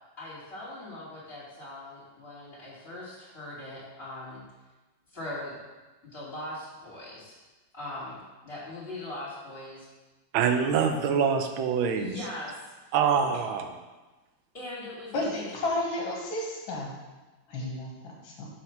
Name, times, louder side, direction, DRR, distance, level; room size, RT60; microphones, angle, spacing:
voice 1, 0.2-4.4 5.1-5.6 6.1-7.3 7.7-8.2 8.4-9.9 11.9-12.5 14.5-15.5, left 1 dB, 30° left, -9 dB, 2.5 m, -40 dB
voice 2, 10.3-12.2 12.9-13.7, right 7 dB, 85° right, 6 dB, 1.4 m, -25 dB
voice 3, 15.1-16.9 17.5-18.5, left 2 dB, 75° left, -2 dB, 2.0 m, -32 dB
7.2 x 3.0 x 5.7 m, 1.2 s
omnidirectional pair, 2.2 m